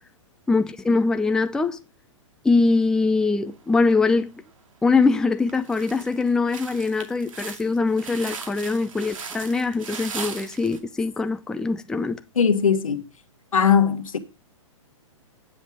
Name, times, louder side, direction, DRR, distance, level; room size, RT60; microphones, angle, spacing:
voice 1, 0.5-1.8 2.4-4.3 4.8-12.2, left 3 dB, 5° left, 0.5 m, -22 dB
sound 1, 3.9-4.5 5.0-5.1 5.5-10.8, right 5 dB, 75° right, 2.5 m, -38 dB
voice 2, 12.3-13.1 13.5-14.2, left 7 dB, 90° left, 1.5 m, -19 dB
9.0 x 7.5 x 6.3 m
hypercardioid pair, 135°, 17 cm